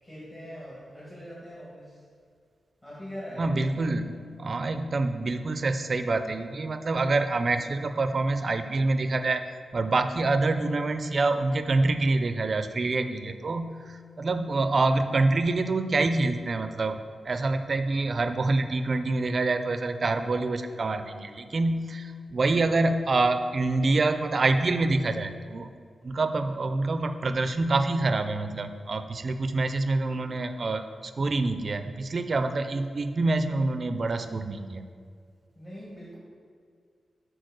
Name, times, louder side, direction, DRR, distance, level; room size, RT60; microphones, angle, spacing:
voice 1, 0.0-2.0 2.8-4.2 35.6-36.2, equal, 25° left, -9 dB, 1.9 m, -42 dB
voice 2, 3.4-4.1 4.4-9.4 9.7-17.0 17.2-25.7 26.0-34.9, right 3 dB, 45° right, 8 dB, 0.4 m, -26 dB
6.3 x 4.4 x 6.5 m, 2.1 s
wide cardioid pair, 130°, 0 cm